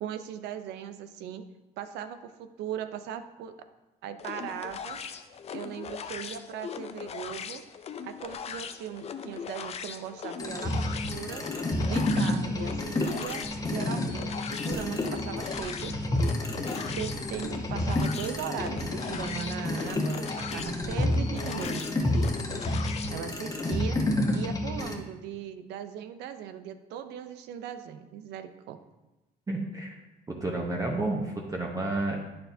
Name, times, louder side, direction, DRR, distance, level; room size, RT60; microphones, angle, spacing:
voice 1, 0.0-1.4 1.8-3.5 4.0-5.0 5.5-7.6 8.0-11.5 11.8-15.9 17.0-22.1 23.1-24.0 24.3-28.8, right 9 dB, 85° right, 9 dB, 0.6 m, -39 dB
sound 1, 4.2-23.2, left 7 dB, 40° left, 0.5 m, -40 dB
sound 2, 10.4-24.9, left 1 dB, 20° left, 1.1 m, -30 dB
voice 2, 29.5-30.0 30.3-32.2, right 2 dB, 20° right, 0 dB, 1.0 m, -30 dB
9.0 x 6.7 x 2.7 m, 1.0 s
cardioid pair, 110°, 17 cm